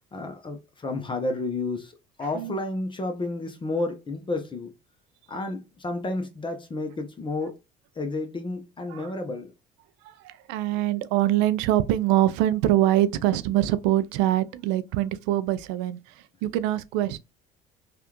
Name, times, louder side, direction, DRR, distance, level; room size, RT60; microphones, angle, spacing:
voice 1, 0.1-1.9 2.2-4.7 5.3-7.6 8.0-9.5, left 2 dB, 25° left, 0.8 m, -31 dB
voice 2, 10.0-17.2, right 13 dB, 80° right, 0.4 m, -24 dB
3.3 x 2.4 x 2.9 m
supercardioid pair, 80°, 18 cm